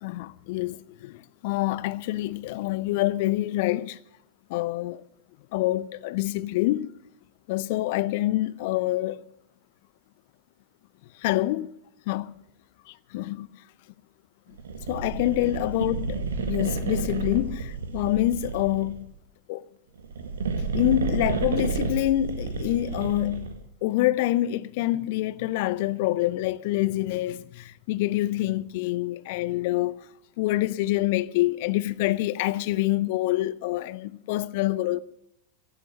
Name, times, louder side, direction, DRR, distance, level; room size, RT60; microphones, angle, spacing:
voice 1, 0.0-0.8 1.0-4.0 4.5-5.0 5.5-6.9 7.5-9.2 11.2-11.7 12.1-12.3 13.1-13.5 14.9-19.1 19.5-19.6 20.7-23.5 23.8-30.0 30.4-35.0, left 16 dB, 50° left, 0.6 m, -26 dB
sound 1, 14.6-19.0 20.0-23.6, right 4 dB, 65° right, 1.9 m, -31 dB
16.0 x 11.5 x 6.4 m
figure-of-eight pair, 90°, 0 cm